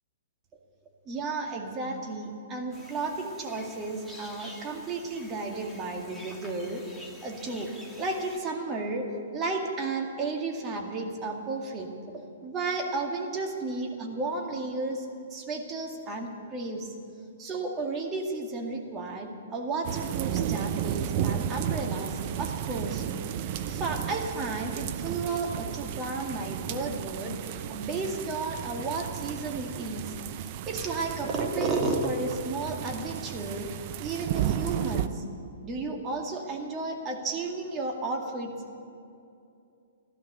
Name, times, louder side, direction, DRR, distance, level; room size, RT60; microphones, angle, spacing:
voice 1, 1.1-7.7 8.0-9.1 9.3-15.1 15.3-16.9 17.4-23.1 23.5-30.1 30.7-33.7 34.0-35.2 35.6-38.5, right 3 dB, 25° right, 1 dB, 2.1 m, -33 dB
sound 1, 2.7-8.4, equal, ahead, 1.8 m, -48 dB
sound 2, 19.8-35.1, right 10 dB, 45° right, 0.7 m, -33 dB
15.5 x 12.5 x 6.7 m, 2.5 s
hypercardioid pair, 120°, 0 cm